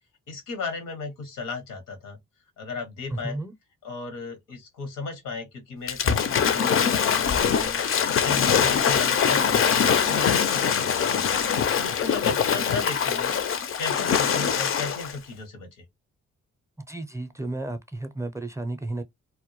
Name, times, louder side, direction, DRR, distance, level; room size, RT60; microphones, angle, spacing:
voice 1, 0.3-2.2 2.6-3.4 3.8-13.3 13.8-15.8, left 4 dB, 85° left, 0.9 m, -35 dB
Waves surf / Splash splatter, 5.9-15.1, left 7 dB, 45° left, 0.4 m, -23 dB
voice 2, 16.9-19.0, right 2 dB, 10° right, 0.5 m, -33 dB
2.1 x 2.1 x 2.9 m
supercardioid pair, 50°, 31 cm